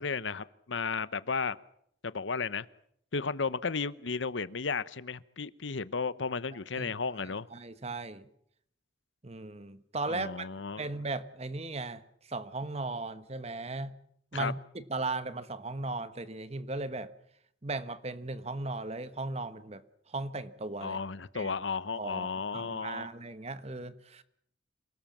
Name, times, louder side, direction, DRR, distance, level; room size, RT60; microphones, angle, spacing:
voice 1, 0.0-1.6 2.0-2.7 3.1-7.5 10.1-10.9 14.3-14.5 20.8-23.1, left 5 dB, 85° left, 17 dB, 0.9 m, -34 dB
voice 2, 7.5-8.3 9.2-10.5 10.8-12.0 12.3-14.0 14.3-17.1 17.6-21.0 21.3-21.5 21.9-22.3 22.5-24.2, right 3 dB, 35° right, 13 dB, 1.2 m, -37 dB
27.5 x 18.5 x 7.4 m, 0.70 s
head